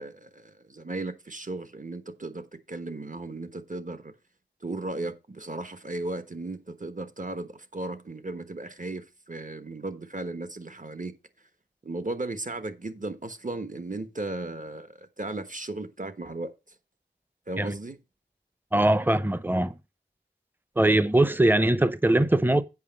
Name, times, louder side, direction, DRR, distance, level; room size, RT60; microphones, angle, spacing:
voice 1, 0.0-4.1 4.6-11.1 11.8-16.5 17.5-18.0, right 2 dB, 45° right, 1.2 m, -36 dB
voice 2, 18.7-19.8 20.8-22.6, right 1 dB, 10° right, 0.7 m, -21 dB
8.3 x 5.7 x 5.3 m
wide cardioid pair, 50°, 18 cm